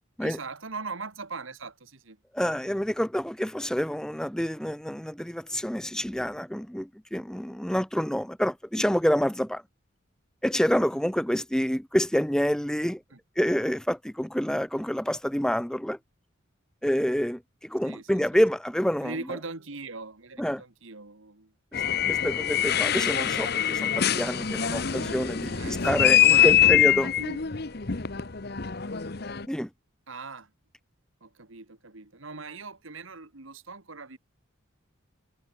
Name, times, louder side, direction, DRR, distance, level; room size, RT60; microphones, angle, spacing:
voice 1, 0.2-2.2 13.1-13.2 17.9-18.4 19.0-21.5 24.7-25.0 25.5-26.8 27.2-27.4 30.1-30.5 31.2-34.2, right 4 dB, 70° right, 1.9 m, -40 dB
voice 2, 2.3-9.6 10.4-13.0 13.4-16.0 16.8-19.1 20.4-20.6 21.7-21.8 22.1-27.1 29.5-29.7, equal, 5° left, 0.6 m, -27 dB
sound 1, 21.7-29.5, left 10 dB, 50° left, 0.9 m, -24 dB
head